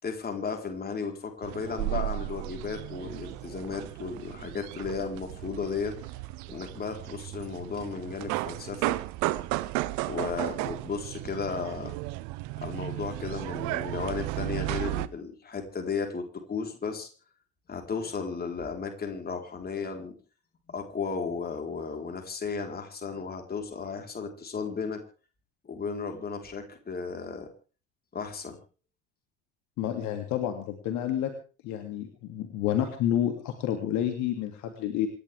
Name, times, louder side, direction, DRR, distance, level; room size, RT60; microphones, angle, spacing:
voice 1, 0.0-6.0 6.5-9.0 10.1-11.9 12.6-17.1 17.7-20.1 20.7-25.0 25.6-27.5 28.1-28.6, left 5 dB, 25° left, 3 dB, 4.4 m, -34 dB
sound 1, 1.4-15.1, right 19 dB, 50° right, 1.1 m, -34 dB
voice 2, 29.8-31.3 31.6-35.1, left 11 dB, 50° left, 6 dB, 2.7 m, -29 dB
27.5 x 11.5 x 3.6 m, 0.37 s
figure-of-eight pair, 65°, 38 cm